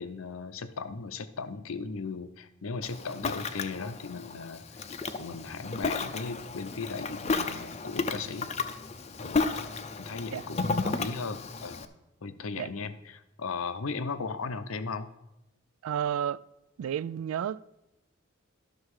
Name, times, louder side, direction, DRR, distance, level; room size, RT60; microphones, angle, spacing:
voice 1, 0.0-4.8 5.2-8.5 9.2-9.4 10.0-11.8 12.2-15.1, left 4 dB, 85° left, 0.7 m, -37 dB
Ocean, 2.8-11.8, left 4 dB, 30° left, 0.5 m, -33 dB
voice 2, 15.8-16.4 16.8-17.6, right 9 dB, 85° right, 0.3 m, -31 dB
12.0 x 6.3 x 4.8 m
head